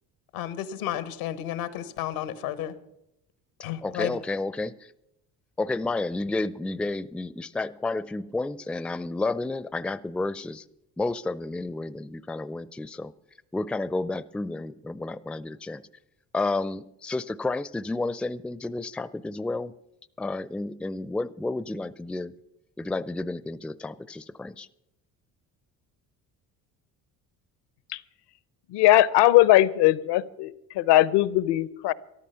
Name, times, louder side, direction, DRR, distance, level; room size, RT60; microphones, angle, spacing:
voice 1, 0.3-2.7 3.6-4.2, left 11 dB, 90° left, 13 dB, 1.2 m, -32 dB
voice 2, 3.8-4.9 5.6-10.6 11.0-13.1 13.5-15.8 16.3-19.7 20.2-22.3 22.8-24.7, left 2 dB, 5° left, 17 dB, 0.4 m, -31 dB
voice 3, 28.7-31.9, left 15 dB, 70° left, 19 dB, 0.8 m, -20 dB
13.5 x 12.5 x 5.7 m, 0.84 s
hypercardioid pair, 65°, 43 cm